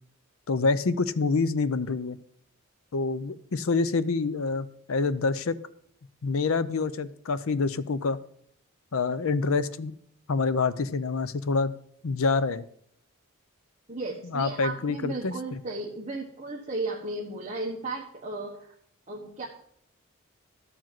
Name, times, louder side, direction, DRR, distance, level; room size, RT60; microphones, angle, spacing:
voice 1, 0.5-2.2 2.9-5.6 6.2-8.2 8.9-9.9 10.3-11.7 12.0-12.6 14.3-15.6, left 4 dB, 70° left, 15 dB, 0.6 m, -27 dB
voice 2, 13.9-18.7 19.1-19.5, right 2 dB, 30° right, -3 dB, 1.3 m, -35 dB
13.0 x 5.0 x 7.6 m, 0.67 s
head